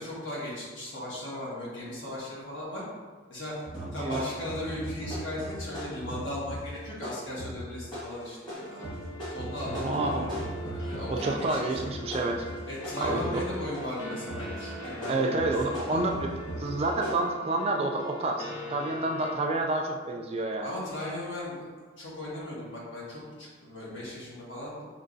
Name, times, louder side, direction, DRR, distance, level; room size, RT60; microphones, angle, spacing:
voice 1, 0.0-2.8 3.3-3.5 3.9-8.9 9.3-11.8 12.7-15.6 15.9-16.1 20.6-21.6 22.0-24.8, left 1 dB, 65° left, -6 dB, 1.4 m, -37 dB
sound 1, 3.7-11.5 11.7-14.0 14.3-17.1, equal, 25° left, 1.4 m, -38 dB
voice 2, 3.8-4.3 9.7-10.2 11.1-12.5 13.0-13.4 15.1-16.3 16.6-20.7, right 2 dB, 30° right, 2 dB, 0.3 m, -29 dB
sound 2, 8.5-19.3, equal, 90° left, 1.0 m, -41 dB
5.4 x 3.1 x 2.6 m, 1.4 s
head